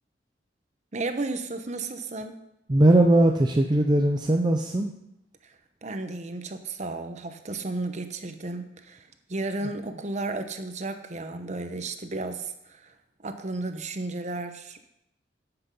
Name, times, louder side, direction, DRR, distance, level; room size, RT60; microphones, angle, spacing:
voice 1, 0.9-2.4 5.4-5.5 5.8-12.9 13.2-14.8, right 2 dB, 40° right, 8 dB, 0.9 m, -33 dB
voice 2, 2.7-4.9, right 1 dB, 25° right, 3 dB, 0.5 m, -20 dB
9.9 x 7.9 x 5.3 m, 0.82 s
head